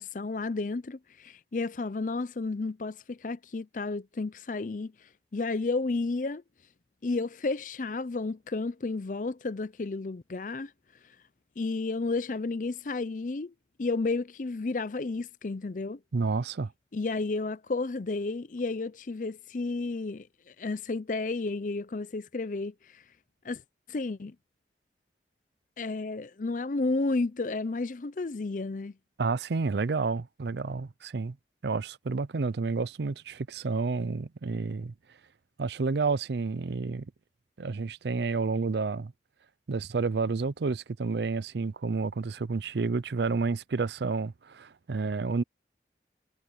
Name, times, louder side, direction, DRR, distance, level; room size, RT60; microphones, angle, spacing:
voice 1, 0.0-4.9 5.3-6.4 7.0-10.7 11.6-13.5 13.8-16.0 16.9-23.0 23.4-23.6 23.9-24.4 25.8-28.9, left 3 dB, 45° left, 0.5 m, -32 dB
voice 2, 16.1-16.7 29.2-31.4 31.6-34.9 35.6-37.1 37.6-39.1 39.7-45.4, right 4 dB, 75° right, 0.5 m, -30 dB
head